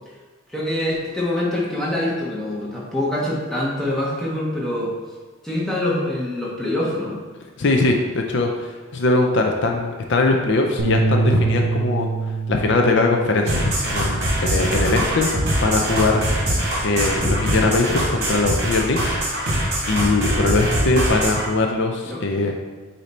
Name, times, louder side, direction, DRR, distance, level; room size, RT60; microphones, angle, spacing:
voice 1, 0.5-4.9 5.4-7.2 22.0-22.2, left 1 dB, ahead, -6 dB, 1.2 m, -24 dB
voice 2, 7.6-12.1 12.5-15.3 15.6-16.5 16.8-19.6 19.9-22.8, left 3 dB, 55° left, 2 dB, 0.5 m, -21 dB
Bass guitar, 10.8-15.3 15.6-17.0, right 3 dB, 80° right, 0.8 m, -26 dB
sound 1, 13.5-21.5, right 1 dB, 50° right, 1.8 m, -22 dB
8.1 x 2.8 x 4.3 m, 1.4 s
head